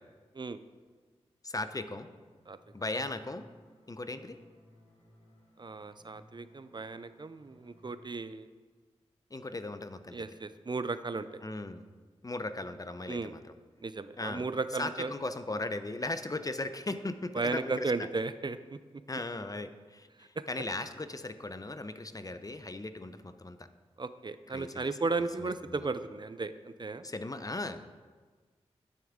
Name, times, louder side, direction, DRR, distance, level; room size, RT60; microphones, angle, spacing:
voice 1, 1.4-2.1 2.7-3.4 3.9-4.4 9.3-10.2 11.4-11.8 12.2-13.4 14.2-14.4 14.8-18.1 19.1-23.6 24.5-24.9 27.0-27.9, left 2 dB, 30° left, 10 dB, 0.7 m, -37 dB
sound 1, 2.4-7.9, left 1 dB, 85° left, 3.4 m, -61 dB
voice 2, 5.6-8.5 10.1-11.4 13.1-13.3 13.8-15.1 17.3-18.8 24.0-27.0, right 3 dB, 40° right, 12 dB, 0.5 m, -35 dB
10.5 x 9.3 x 3.7 m, 1.4 s
cardioid pair, 45°, 11 cm